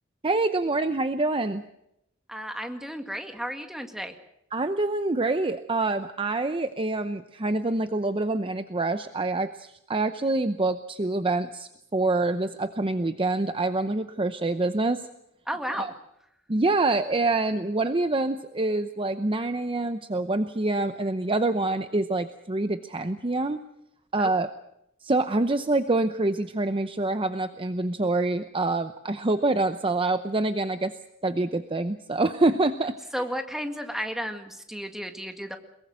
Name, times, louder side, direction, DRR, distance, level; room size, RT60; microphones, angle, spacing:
voice 1, 0.2-1.6 4.5-15.0 15.7-15.9 16.5-23.6 24.1-24.5 25.0-30.9 31.2-33.0, right 2 dB, 25° right, 9 dB, 0.7 m, -26 dB
voice 2, 2.3-4.1 15.5-15.9 24.2-24.4 33.1-35.6, equal, ahead, 5 dB, 1.9 m, -33 dB
22.5 x 22.0 x 6.4 m, 0.81 s
head